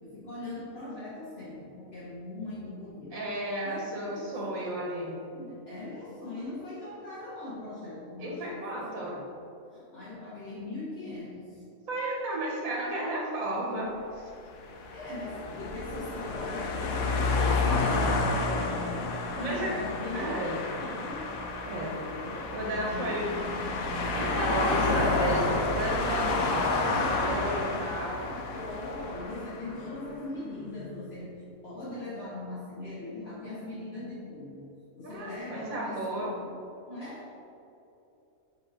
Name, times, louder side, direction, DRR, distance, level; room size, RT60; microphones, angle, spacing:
voice 1, 0.0-3.3 3.6-4.8 5.3-9.3 9.7-11.6 14.9-16.8 17.3-19.0 19.3-21.3 21.8-24.2 28.3-34.7 34.9-36.5 36.9-37.3, left 2 dB, 50° left, -10 dB, 1.6 m, -40 dB
voice 2, 3.1-5.2 8.2-9.2 11.9-14.3 19.4-19.8 20.1-20.6 21.6-22.0 22.5-23.3 24.1-28.3 35.0-36.3, right 1 dB, 75° right, -3 dB, 1.5 m, -33 dB
sound 1, 14.4-29.8, left 3 dB, 85° left, 1.2 m, -30 dB
9.7 x 3.9 x 3.6 m, 2.9 s
omnidirectional pair, 1.4 m